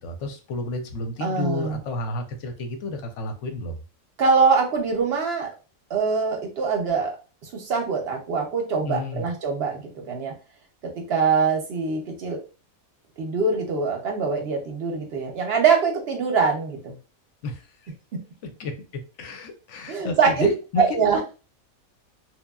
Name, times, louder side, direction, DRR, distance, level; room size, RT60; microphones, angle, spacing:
voice 1, 0.0-3.8 8.8-9.3 17.4-17.9 18.4-18.7 19.2-21.1, left 2 dB, 65° left, 5 dB, 0.8 m, -31 dB
voice 2, 1.2-1.8 4.2-5.5 5.9-7.1 7.5-10.3 11.1-12.4 13.2-16.9 19.9-20.5 20.8-21.2, right 5 dB, 60° right, 2 dB, 0.7 m, -23 dB
3.0 x 2.2 x 2.2 m, 0.32 s
omnidirectional pair, 1.5 m